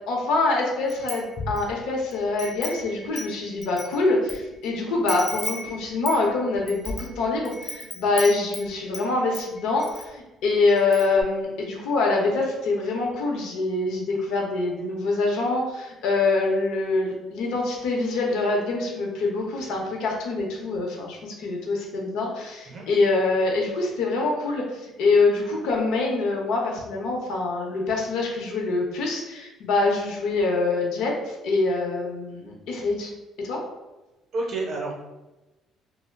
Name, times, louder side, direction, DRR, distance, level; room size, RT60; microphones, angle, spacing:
voice 1, 0.1-33.1 33.4-33.6, left 3 dB, 80° left, -1 dB, 0.7 m, -25 dB
Wind chime, 0.9-1.7 2.1-4.4 4.6-4.7 5.1-9.1 9.3-10.1 10.4-10.5 10.8-11.2, left 2 dB, 20° left, 0.3 m, -35 dB
voice 2, 34.3-34.9, right 3 dB, 35° right, -1 dB, 0.5 m, -29 dB
2.3 x 2.0 x 3.3 m, 1.0 s
cardioid pair, 175°, 0 cm